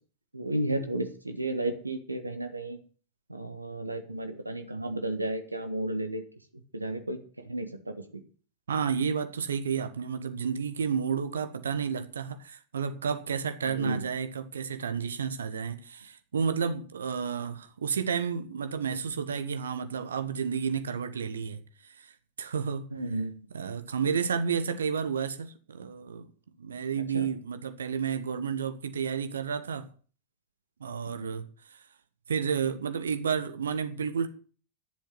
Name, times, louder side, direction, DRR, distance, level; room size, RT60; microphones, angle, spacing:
voice 1, 0.3-2.8 3.3-6.2 6.7-8.2 13.6-14.0 22.9-23.5 27.1-27.2 31.1-31.4, right 1 dB, 85° right, 1.6 m, -33 dB
voice 2, 8.7-22.1 22.4-22.9 23.5-26.3 26.6-29.9 30.8-31.8 32.3-34.3, right 6 dB, 70° right, 1.4 m, -31 dB
11.0 x 7.3 x 9.4 m
figure-of-eight pair, 90°, 0 cm